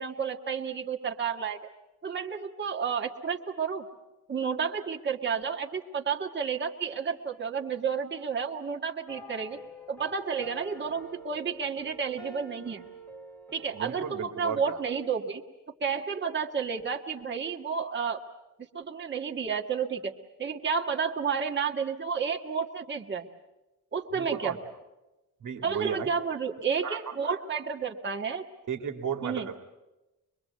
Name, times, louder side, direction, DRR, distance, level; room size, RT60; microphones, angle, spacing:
voice 1, 0.0-1.6 2.0-3.9 4.3-9.6 9.9-12.8 13.5-15.4 15.8-18.2 18.7-20.1 20.4-23.3 23.9-24.6 25.6-28.4 29.2-29.5, right 6 dB, 35° right, 1 dB, 1.7 m, -31 dB
sound 1, 9.1-14.3, right 1 dB, 5° left, 1.9 m, -47 dB
voice 2, 13.7-14.8 24.2-24.6 25.4-26.1 26.8-27.0 27.2-27.4 28.7-29.6, right 7 dB, 65° right, 6 dB, 2.3 m, -34 dB
24.0 x 23.5 x 8.4 m, 1.0 s
wide cardioid pair, 160°, 33 cm